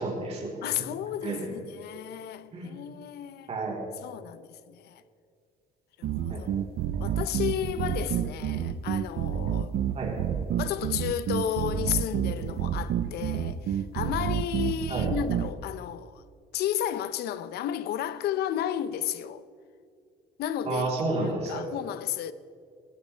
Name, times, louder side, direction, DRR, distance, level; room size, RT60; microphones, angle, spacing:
voice 1, 0.0-0.6 1.2-1.5 2.5-2.8 3.5-3.9 6.3-6.4 9.9-10.3 14.9-15.1 20.6-21.6, right 3 dB, 40° right, 3.9 m, -31 dB
voice 2, 0.6-3.5 4.0-5.0 6.0-6.5 7.0-9.7 10.6-16.2 16.5-19.4 20.4-22.3, left 10 dB, 70° left, 0.7 m, -33 dB
sound 1, 6.0-15.5, right 10 dB, 65° right, 0.8 m, -29 dB
18.0 x 15.0 x 3.4 m
cardioid pair, 110°, 17 cm